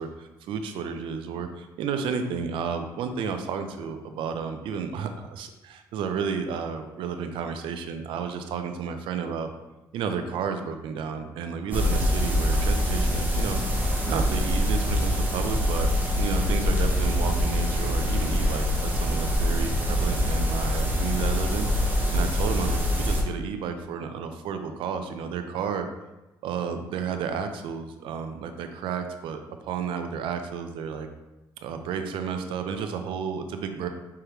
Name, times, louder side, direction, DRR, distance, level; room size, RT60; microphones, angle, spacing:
voice 1, 0.0-9.5 9.9-13.6 14.1-21.7 22.1-25.9 26.4-31.1 31.6-33.9, right 6 dB, 70° right, 7 dB, 0.5 m, -32 dB
sound 1, 11.7-23.2, equal, 20° right, 1.0 m, -24 dB
4.6 x 3.5 x 3.0 m, 1.0 s
supercardioid pair, 70°, 9 cm